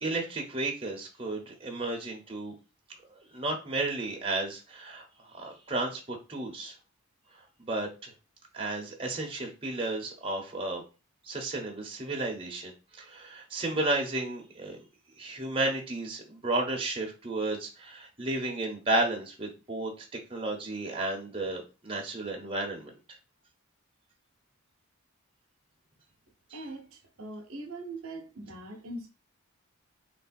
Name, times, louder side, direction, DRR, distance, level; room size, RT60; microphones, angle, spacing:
voice 1, 0.0-2.5 3.3-5.0 5.3-6.7 7.6-8.1 8.5-10.8 11.3-12.7 13.0-14.8 15.2-19.9 20.3-22.9, right 2 dB, 25° right, 1.1 m, -32 dB
voice 2, 26.5-29.1, right 2 dB, 70° right, 0.9 m, -41 dB
3.2 x 2.8 x 4.3 m
head